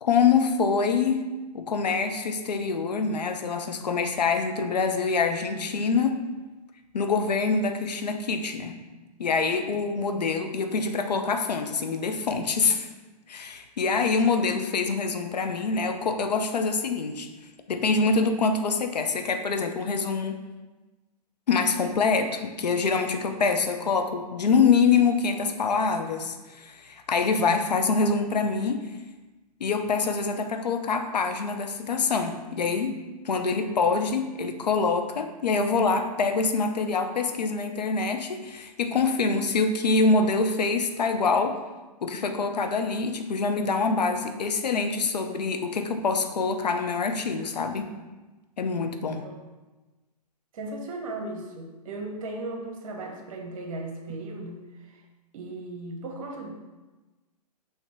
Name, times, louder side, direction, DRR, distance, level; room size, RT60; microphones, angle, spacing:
voice 1, 0.0-1.2 1.5-6.2 6.9-8.8 9.2-12.9 13.3-17.3 17.7-20.4 21.5-28.9 29.6-41.6 42.0-47.9 48.6-49.2, left 4 dB, 80° left, 6 dB, 0.5 m, -25 dB
voice 2, 50.5-55.0 55.3-56.5, right 2 dB, 55° right, 2 dB, 0.9 m, -36 dB
5.6 x 2.8 x 3.4 m, 1.2 s
figure-of-eight pair, 120°, 21 cm